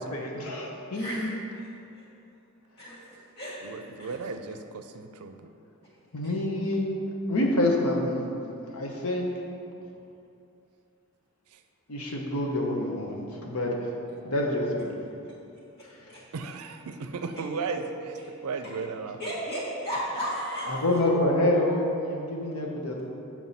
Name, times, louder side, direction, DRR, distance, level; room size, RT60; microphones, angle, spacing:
voice 1, 0.0-1.3 6.1-6.9 7.3-8.3 8.7-9.4 11.9-13.9 14.2-15.1 20.7-23.0, left 1 dB, 80° left, 0 dB, 0.9 m, -27 dB
voice 2, 0.9-1.3 1.5-1.7 1.9-2.0 2.8-3.0 3.4-4.1 16.1-16.2 18.2-18.3 18.7-18.8 19.2-21.1, equal, 45° left, -8 dB, 1.5 m, -34 dB
voice 3, 3.6-5.5 11.5-11.6 16.3-17.8 18.4-19.2, right 4 dB, 85° right, 7 dB, 0.5 m, -35 dB
7.4 x 4.6 x 4.1 m, 2.7 s
head